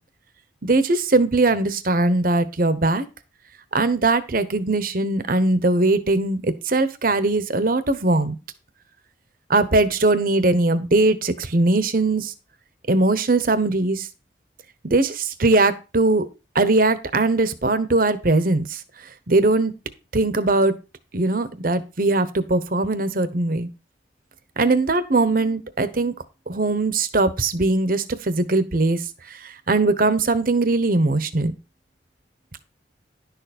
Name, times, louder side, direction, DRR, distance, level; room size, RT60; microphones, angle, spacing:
voice 1, 0.6-3.1 3.7-8.3 9.5-12.3 12.9-14.1 14.8-16.3 16.5-18.6 19.3-19.7 20.1-20.7 21.1-23.7 24.6-26.1 26.5-29.0 29.7-31.5, right 2 dB, 50° right, 13 dB, 1.0 m, -20 dB
11.0 x 6.8 x 4.3 m, 0.30 s
head